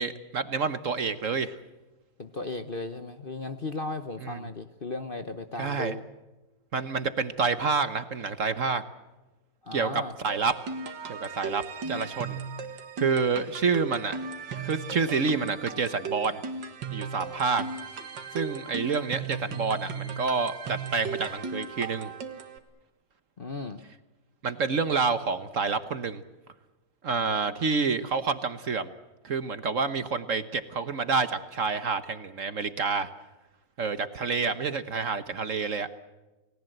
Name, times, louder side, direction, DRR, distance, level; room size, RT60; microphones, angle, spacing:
voice 1, 0.0-1.6 4.2-4.4 5.6-5.9 6.7-8.8 9.7-10.5 11.1-12.4 13.0-14.3 14.6-16.4 16.9-17.6 18.3-22.1 24.4-26.2 27.0-28.9 29.2-33.1 33.8-35.9, right 5 dB, 50° right, 12 dB, 1.2 m, -28 dB
voice 2, 2.2-6.0 9.6-10.1 23.4-23.8, left 3 dB, 35° left, 9 dB, 1.0 m, -36 dB
sound 1, 10.3-22.6, right 5 dB, 80° right, 2.4 m, -37 dB
29.5 x 19.0 x 7.9 m, 1.1 s
omnidirectional pair, 1.9 m